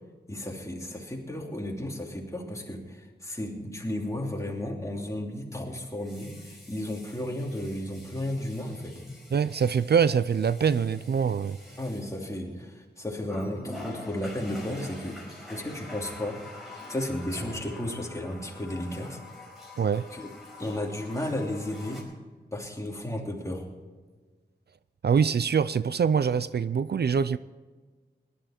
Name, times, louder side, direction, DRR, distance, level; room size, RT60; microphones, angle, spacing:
voice 1, 0.3-9.0 11.8-15.2 15.5-16.4 16.9-19.2 20.1-20.3 20.6-22.0 22.5-23.7, left 1 dB, 15° left, 0 dB, 2.9 m, -33 dB
Water tap faucet, 2.3-2.5 5.9-12.7 13.3-22.0, left 1 dB, ahead, 5.0 m, -45 dB
voice 2, 9.3-11.6 19.8-20.0 25.0-27.4, right 6 dB, 65° right, 15 dB, 0.4 m, -24 dB
19.0 x 12.0 x 4.4 m, 1.4 s
wide cardioid pair, 90°, 18 cm